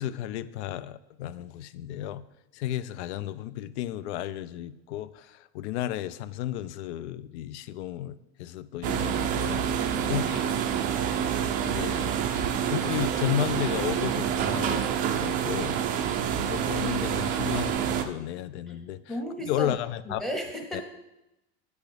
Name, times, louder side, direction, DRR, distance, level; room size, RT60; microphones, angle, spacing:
voice 1, 0.0-2.2 2.5-10.4 11.7-12.1 12.7-15.8 16.4-19.0 19.5-20.2, left 12 dB, 80° left, 16 dB, 0.5 m, -33 dB
sound 1, 8.8-18.0, right 8 dB, 25° right, 0.4 m, -27 dB
voice 2, 9.6-10.9 18.7-18.8 19.1-19.7 20.0-20.8, equal, ahead, 3 dB, 0.8 m, -35 dB
8.2 x 8.1 x 3.4 m, 0.94 s
supercardioid pair, 160°, 33 cm